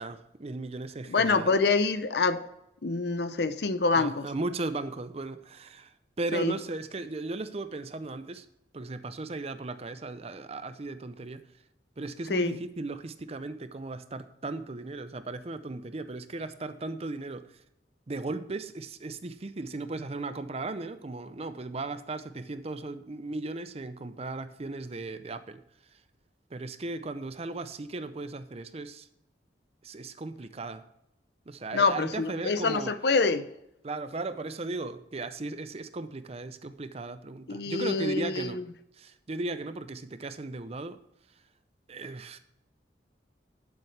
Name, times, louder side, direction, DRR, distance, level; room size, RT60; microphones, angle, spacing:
voice 1, 0.0-1.6 3.9-8.4 8.7-11.5 12.0-17.5 18.1-25.6 26.5-29.1 29.8-30.8 31.5-32.9 33.8-38.6 39.0-41.0 41.9-42.4, right 2 dB, 35° right, 12 dB, 0.6 m, -36 dB
voice 2, 1.1-2.4 2.8-4.3 6.3-6.6 12.3-12.6 31.7-33.4 37.5-38.6, left 4 dB, 65° left, 12 dB, 0.7 m, -26 dB
11.5 x 7.1 x 3.3 m, 0.82 s
head